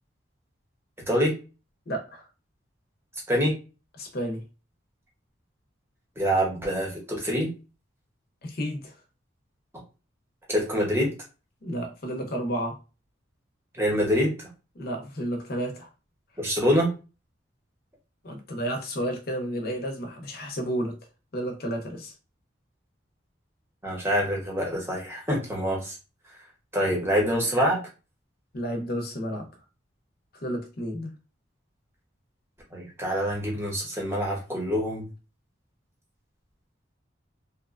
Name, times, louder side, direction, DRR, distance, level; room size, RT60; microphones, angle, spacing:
voice 1, 1.9-2.3 4.0-4.4 8.4-8.9 11.6-12.8 14.7-15.9 18.2-20.9 21.3-22.1 28.5-29.5 30.3-31.1, equal, 50° left, 0.7 m, -31 dB
voice 2, 6.2-7.5 10.5-11.1 13.8-14.3 16.4-16.9 23.8-25.9 26.7-27.8 32.7-35.0, equal, 15° right, 0.8 m, -25 dB
2.9 x 2.1 x 2.4 m
head